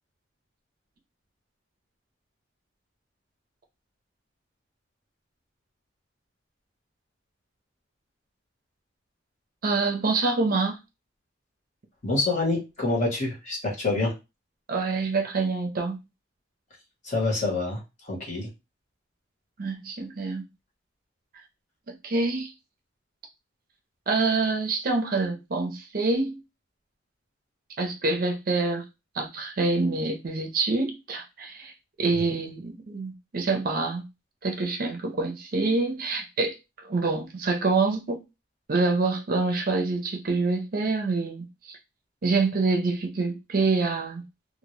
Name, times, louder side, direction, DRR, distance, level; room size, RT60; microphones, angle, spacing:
voice 1, 9.6-10.8 14.7-16.0 19.6-20.4 21.9-22.5 24.1-26.4 27.8-28.8 29.2-31.7 32.0-34.0 34.4-36.5 36.8-38.2 38.7-41.8 42.2-44.2, right 3 dB, 50° right, 0.5 m, -26 dB
voice 2, 12.0-14.1 17.0-17.8 18.1-18.5 32.1-32.2, left 2 dB, 40° left, 0.9 m, -26 dB
2.1 x 2.1 x 3.0 m
head